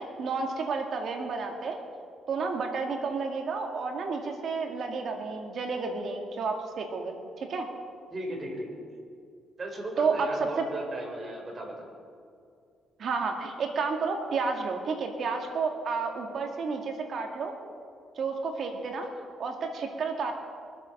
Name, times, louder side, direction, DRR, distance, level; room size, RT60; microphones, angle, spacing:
voice 1, 0.0-1.8 2.3-7.7 10.0-10.7 13.0-17.5 18.2-19.1 19.4-20.3, right 4 dB, 60° right, 3 dB, 2.2 m, -31 dB
voice 2, 8.1-8.8 9.6-11.9, right 1 dB, 35° right, 1 dB, 4.6 m, -36 dB
23.5 x 8.1 x 6.6 m, 2.4 s
cardioid pair, 90°, 0 cm